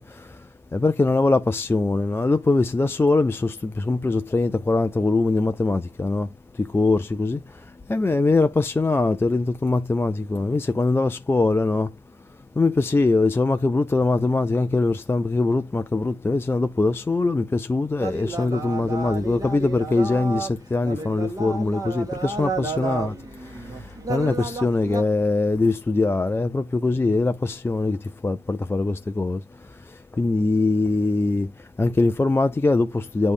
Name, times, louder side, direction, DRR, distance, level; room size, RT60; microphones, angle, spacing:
voice 1, 0.7-6.3 6.6-7.4 7.9-11.9 12.6-23.2 23.4-28.0 28.2-29.4 30.1-31.5 31.8-33.3, left 3 dB, 10° left, 0.3 m, -22 dB
sound 1, 18.0-25.0, right 3 dB, 15° right, 1.3 m, -32 dB
8.1 x 3.2 x 3.6 m
cardioid pair, 90°, 20 cm